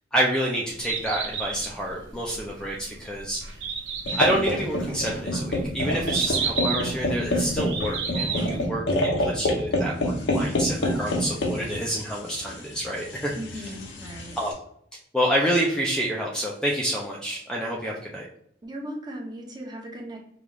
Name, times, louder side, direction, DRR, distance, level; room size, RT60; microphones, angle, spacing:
voice 1, 0.1-3.4 4.1-13.3 14.4-14.5 15.1-18.3, right 1 dB, 5° left, -3 dB, 0.5 m, -28 dB
Bird, 0.6-8.6, right 5 dB, 85° right, 1.0 m, -32 dB
sound 1, 4.1-14.5, left 1 dB, 80° left, 0.8 m, -28 dB
voice 2, 13.3-14.4 18.6-20.2, equal, 25° right, -1 dB, 0.8 m, -37 dB
5.2 x 2.4 x 3.1 m, 0.69 s
head